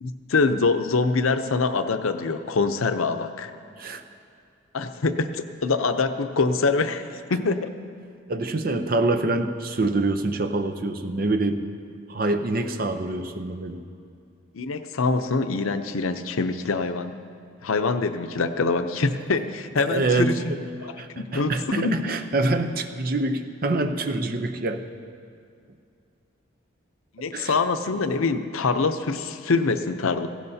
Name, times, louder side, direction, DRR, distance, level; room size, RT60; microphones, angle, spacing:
voice 1, 0.0-3.5 4.7-7.7 14.5-17.1 17.6-20.4 20.8-22.0 27.1-30.3, left 4 dB, 90° left, 9 dB, 0.6 m, -24 dB
voice 2, 8.3-11.6 12.1-13.8 19.8-20.6 21.0-24.8 27.2-27.6, right 2 dB, 45° right, 7 dB, 0.6 m, -25 dB
17.5 x 15.5 x 2.8 m, 2.4 s
head